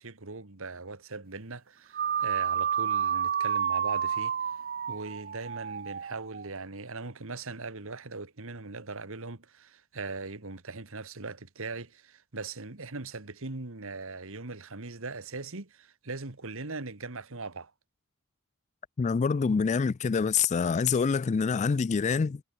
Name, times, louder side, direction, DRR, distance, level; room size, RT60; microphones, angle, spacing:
voice 1, 0.0-4.3 4.9-17.7, right 3 dB, 65° right, 1.8 m, -40 dB
sound 1, 1.9-6.5, right 8 dB, 45° right, 1.1 m, -30 dB
voice 2, 19.0-22.4, left 5 dB, 35° left, 0.3 m, -26 dB
head